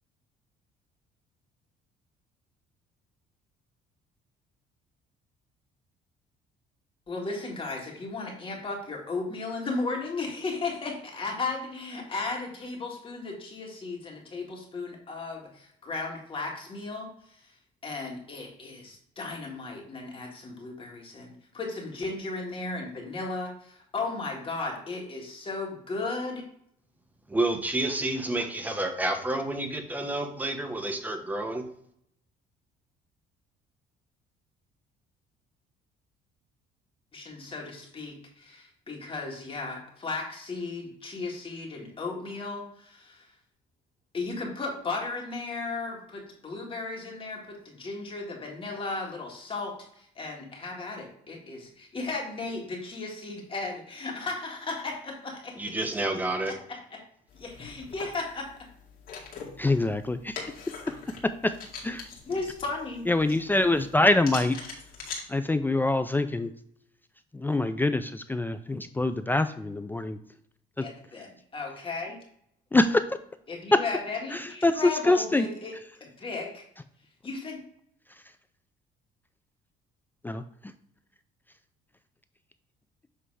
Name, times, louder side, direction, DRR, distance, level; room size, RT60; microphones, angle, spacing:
voice 1, 7.1-17.5 17.8-26.5 37.1-43.3 44.1-55.7 56.7-57.0 57.3-58.5 62.2-63.0 70.8-72.2 73.5-75.7 76.0-76.6 77.2-77.6, left 3 dB, 30° left, -1 dB, 1.9 m, -35 dB
voice 2, 27.3-31.7 55.6-56.5, right 2 dB, 10° right, 5 dB, 1.0 m, -29 dB
sound 1, 57.3-65.2, left 5 dB, 60° left, 2.1 m, -43 dB
voice 3, 59.6-60.4 61.2-61.5 61.8-62.0 63.1-64.6 65.3-66.5 67.3-70.2 70.8-70.9 72.7-73.2 73.7-73.8 74.3-75.5 80.2-80.4, left 2 dB, 10° left, 10 dB, 0.4 m, -24 dB
7.7 x 3.3 x 4.7 m, 0.68 s
cardioid pair, 110°, 17 cm